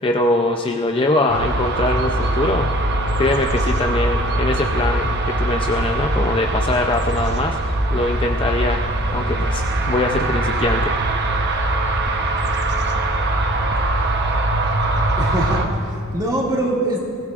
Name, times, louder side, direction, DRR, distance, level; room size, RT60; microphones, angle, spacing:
voice 1, 0.0-2.7 3.2-5.1 5.4-10.9, left 2 dB, 25° left, 2 dB, 0.5 m, -22 dB
sound 1, 1.3-15.7, right 2 dB, 50° right, 1.0 m, -21 dB
voice 2, 15.2-17.0, right 1 dB, 20° right, -4 dB, 2.4 m, -23 dB
22.0 x 15.5 x 2.5 m, 2.6 s
head